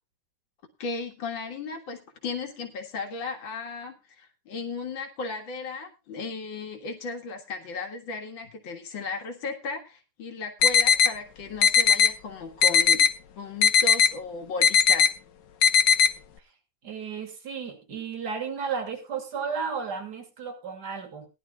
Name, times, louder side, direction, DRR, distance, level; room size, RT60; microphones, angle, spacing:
voice 1, 0.8-13.0 13.3-15.1, left 4 dB, 90° left, 2 dB, 2.5 m, -35 dB
sound 1, 10.6-11.1 11.6-12.1 12.6-13.1 13.6-14.1 14.6-15.1 15.6-16.1, left 7 dB, 70° left, 1.6 m, -18 dB
voice 2, 16.8-21.3, right 6 dB, 60° right, 5 dB, 3.0 m, -33 dB
20.0 x 11.0 x 2.3 m, 0.26 s
omnidirectional pair, 2.0 m